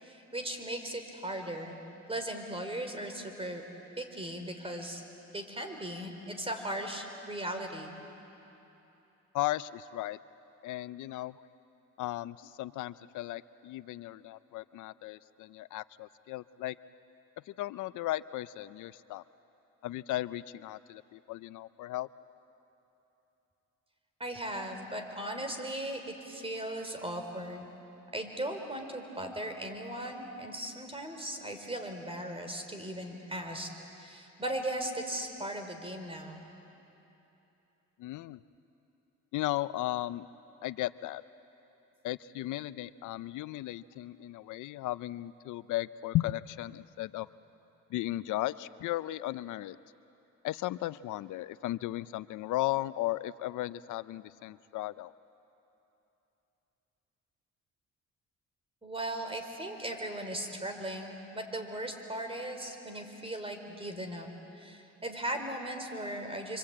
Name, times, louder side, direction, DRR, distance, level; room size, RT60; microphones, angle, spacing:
voice 1, 0.0-1.8 2.1-3.6 4.0-5.0 5.3-7.9 24.2-27.7 28.1-33.7 34.0-36.5 58.8-64.3 64.5-66.6, right 1 dB, 20° right, 5 dB, 3.8 m, -38 dB
voice 2, 9.3-10.2 10.6-11.4 12.0-16.8 17.5-19.2 19.8-22.1 38.0-38.4 39.3-40.3 40.6-41.2 42.0-47.3 47.9-49.8 50.4-55.1, left 16 dB, 80° left, 16 dB, 0.5 m, -35 dB
26.5 x 25.0 x 8.7 m, 3.0 s
cardioid pair, 90°, 30 cm